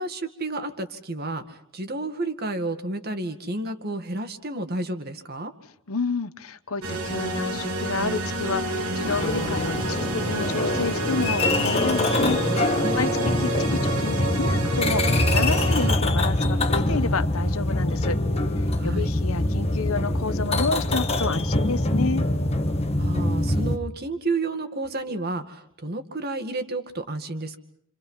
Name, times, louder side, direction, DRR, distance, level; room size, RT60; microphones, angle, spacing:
voice 1, 0.0-5.5 12.8-13.3 18.8-19.1 23.0-27.6, right 2 dB, 45° right, 7 dB, 2.1 m, -31 dB
voice 2, 5.9-12.4 12.6-18.2 18.8-22.3, left 4 dB, 85° left, 13 dB, 1.1 m, -30 dB
sound 1, 6.8-15.9, right 2 dB, 80° right, 3.2 m, -28 dB
sound 2, 9.0-23.8, left 1 dB, 30° left, 1.5 m, -24 dB
29.5 x 27.0 x 5.7 m, 0.67 s
head